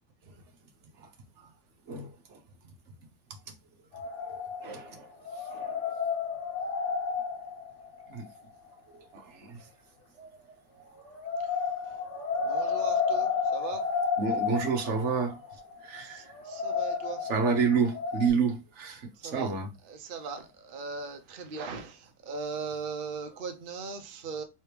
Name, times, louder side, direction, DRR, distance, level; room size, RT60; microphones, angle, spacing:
sound 1, 3.9-4.9 5.2-8.4 11.1-18.3, left 5 dB, 45° left, 1.3 m, -32 dB
voice 1, 4.6-5.1 5.5-5.7 8.1-8.2 9.1-9.6 10.2-10.3 14.2-15.4 15.8-16.2 17.2-19.7, right 5 dB, 50° right, 0.9 m, -29 dB
voice 2, 12.5-13.8 16.5-17.2 19.2-19.5 19.9-20.4 20.7-21.9 22.3-24.4, right 4 dB, 80° right, 0.4 m, -38 dB
4.6 x 3.2 x 3.3 m
omnidirectional pair, 2.0 m